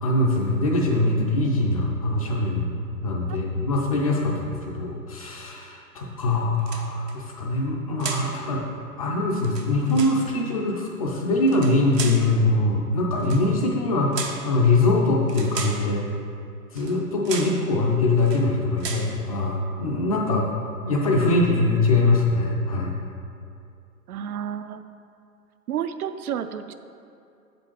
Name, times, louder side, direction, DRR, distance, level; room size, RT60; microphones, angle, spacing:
voice 1, 0.0-2.7 3.0-8.6 9.0-16.1 16.7-20.5 20.9-23.0, left 2 dB, 25° left, -1 dB, 0.4 m, -23 dB
sound 1, 6.6-7.2 8.0-8.4 9.3-10.2 11.4-12.3 13.2-13.5 14.1-14.5 15.3-15.9 16.8-17.0 17.2-17.6 18.2-18.5 18.8-19.1, right 5 dB, 85° right, 0.9 m, -34 dB
voice 2, 24.1-24.8 25.7-26.7, right 9 dB, 65° right, 10 dB, 0.5 m, -31 dB
6.7 x 5.2 x 4.5 m, 2.5 s
hypercardioid pair, 120°, 47 cm